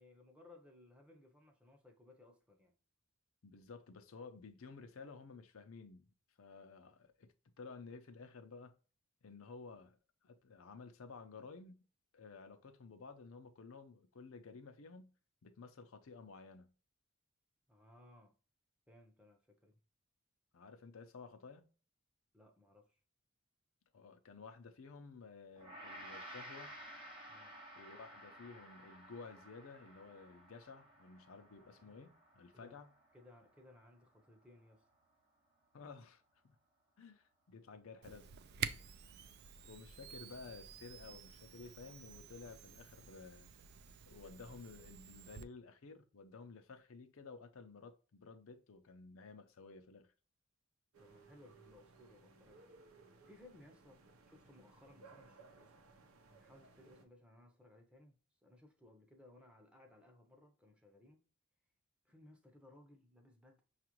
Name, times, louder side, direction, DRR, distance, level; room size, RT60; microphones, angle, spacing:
voice 1, 0.0-2.8 17.7-18.3 18.9-19.8 22.3-23.0 27.3-27.6 32.5-32.8 33.1-34.8 51.0-55.9 56.3-61.2 62.0-63.6, left 2 dB, 5° right, 0.6 m, -62 dB
voice 2, 3.4-6.1 6.4-8.8 9.2-10.0 10.2-11.8 12.1-15.1 15.4-16.7 20.5-21.7 23.9-26.8 27.7-32.9 35.7-36.5 37.0-38.7 39.6-43.5 44.1-50.1, left 4 dB, 75° left, 0.6 m, -54 dB
Gong, 25.6-34.9, right 1 dB, 25° right, 1.0 m, -55 dB
Camera, 38.0-45.5, right 8 dB, 50° right, 0.3 m, -49 dB
sound 1, 50.9-57.0, right 3 dB, 90° right, 0.7 m, -62 dB
5.8 x 2.4 x 2.9 m
head